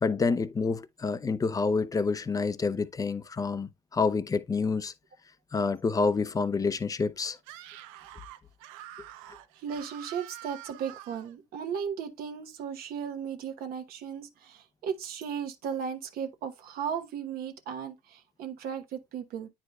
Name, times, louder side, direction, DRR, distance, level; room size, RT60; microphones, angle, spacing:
voice 1, 0.0-4.9 5.5-7.4, left 4 dB, 20° left, 0.6 m, -28 dB
Screaming, 7.4-11.3, right 13 dB, 80° right, 0.6 m, -47 dB
voice 2, 9.6-19.5, right 7 dB, 60° right, 1.1 m, -36 dB
9.3 x 4.8 x 2.3 m
supercardioid pair, 85°, 17 cm